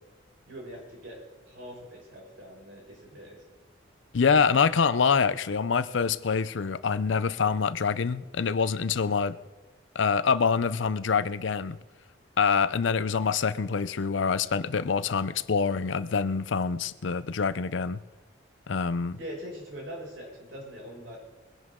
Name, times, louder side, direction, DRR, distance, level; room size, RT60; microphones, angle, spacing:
voice 1, 0.4-3.4 19.2-21.2, equal, 90° right, 6.1 m, -42 dB
voice 2, 4.1-9.4 9.9-11.8 12.4-18.0 18.7-19.2, left 5 dB, 80° left, 0.5 m, -25 dB
22.5 x 11.0 x 3.7 m
head